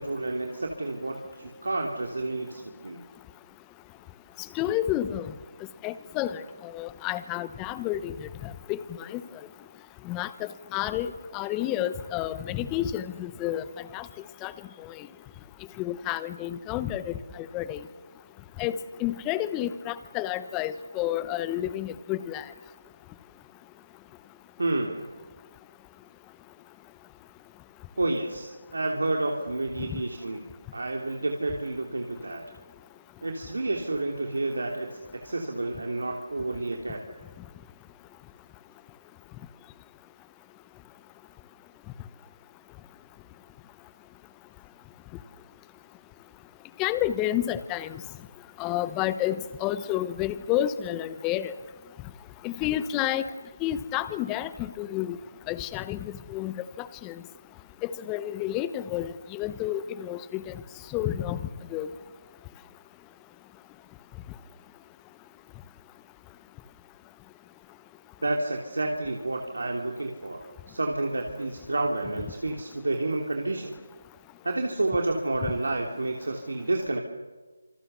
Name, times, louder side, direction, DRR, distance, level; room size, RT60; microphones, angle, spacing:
voice 1, 0.0-3.0 24.6-25.0 28.0-30.4 30.7-32.4 33.2-37.0 68.2-70.4 70.7-73.7 74.4-77.0, right 2 dB, 70° right, 1 dB, 3.1 m, -30 dB
voice 2, 4.5-5.3 5.8-8.1 8.4-9.2 10.0-13.6 13.9-14.1 14.4-14.5 14.8-14.9 15.8-17.8 18.6-22.4 29.9-30.0 46.8-48.0 48.6-51.5 52.4-53.3 53.6-55.2 55.5-57.1 57.8-60.5 60.9-61.4 61.7-61.9, left 12 dB, 15° left, 14 dB, 0.9 m, -30 dB
29.0 x 27.0 x 7.0 m, 1.3 s
figure-of-eight pair, 160°, 0 cm